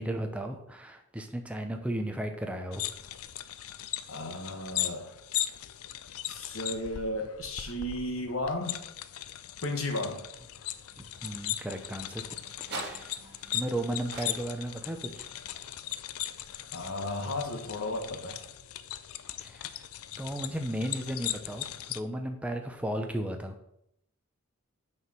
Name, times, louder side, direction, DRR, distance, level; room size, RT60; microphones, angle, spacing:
voice 1, 0.0-2.8 11.0-12.2 12.6-13.2 13.5-15.3 19.4-19.8 20.2-23.6, right 1 dB, 5° right, 4 dB, 0.8 m, -35 dB
sound 1, 2.7-22.0, left 12 dB, 85° left, 0.5 m, -38 dB
voice 2, 4.1-5.1 6.2-8.8 9.6-10.2 16.7-18.4, left 1 dB, 70° left, 4 dB, 1.3 m, -34 dB
sound 2, 9.8-18.0, right 3 dB, 50° right, 2.1 m, -48 dB
6.2 x 4.8 x 6.2 m, 0.77 s
head